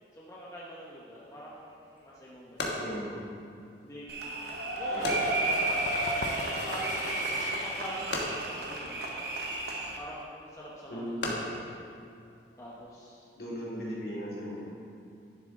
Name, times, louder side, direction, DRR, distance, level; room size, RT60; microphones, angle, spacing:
voice 1, 0.1-2.8 3.8-4.1 4.8-5.8 6.3-9.0 9.7-11.0 11.7-11.9 12.6-13.2, equal, 20° left, -6 dB, 0.9 m, -45 dB
sound 1, 1.5-12.9, left 1 dB, 85° left, 1.4 m, -41 dB
voice 2, 2.8-3.1 4.9-5.2 10.9-11.3 13.4-14.6, equal, 60° left, -6 dB, 2.3 m, -37 dB
sound 2, 4.1-10.0, right 2 dB, 65° right, 1.0 m, -32 dB
sound 3, 4.7-10.2, left 4 dB, 45° left, 0.4 m, -42 dB
10.5 x 7.3 x 3.7 m, 2.4 s
head